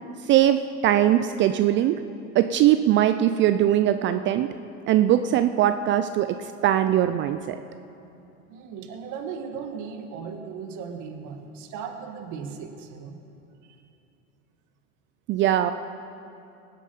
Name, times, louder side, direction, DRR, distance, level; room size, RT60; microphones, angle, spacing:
voice 1, 0.3-2.0 2.4-4.5 4.9-6.4 6.6-7.6 15.3-15.7, right 12 dB, 30° right, 10 dB, 0.4 m, -21 dB
voice 2, 8.5-13.2 13.7-13.8, right 6 dB, 45° right, 5 dB, 1.6 m, -37 dB
19.5 x 8.3 x 5.4 m, 2.8 s
hypercardioid pair, 95°, 41 cm